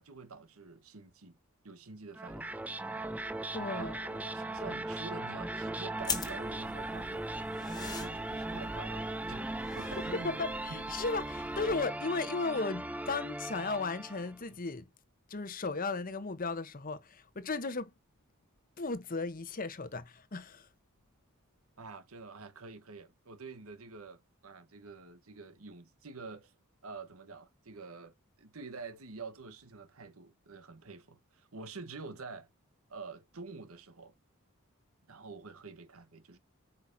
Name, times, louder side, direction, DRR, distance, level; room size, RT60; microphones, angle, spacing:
voice 1, 0.0-1.4 1.6-2.5 3.7-7.3 8.0-9.5 9.7-10.8 21.8-26.6 26.8-32.5 32.9-34.1 35.1-36.4, right 4 dB, 80° right, 1.2 m, -47 dB
sound 1, 2.1-14.4, right 2 dB, 5° right, 0.5 m, -38 dB
voice 2, 3.5-4.0 10.1-14.9 15.3-17.9 18.8-20.7, left 3 dB, 40° left, 0.9 m, -35 dB
sound 2, 6.0-11.8, left 4 dB, 20° left, 1.3 m, -43 dB
8.5 x 5.4 x 2.6 m
head